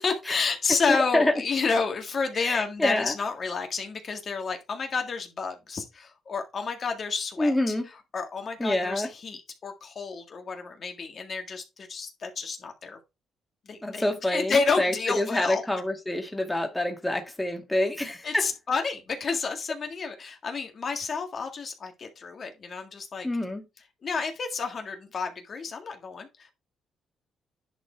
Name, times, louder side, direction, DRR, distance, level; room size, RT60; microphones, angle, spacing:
voice 1, 0.0-7.7 8.1-13.0 13.7-14.0 14.3-15.6 18.2-23.3 24.0-26.5, left 4 dB, 45° left, 1.8 m, -30 dB
voice 2, 0.9-1.3 2.4-3.1 7.4-7.9 8.6-9.1 13.8-18.5 23.2-23.6, left 1 dB, 10° left, 2.0 m, -27 dB
10.5 x 4.2 x 4.5 m
cardioid pair, 90°, 0 cm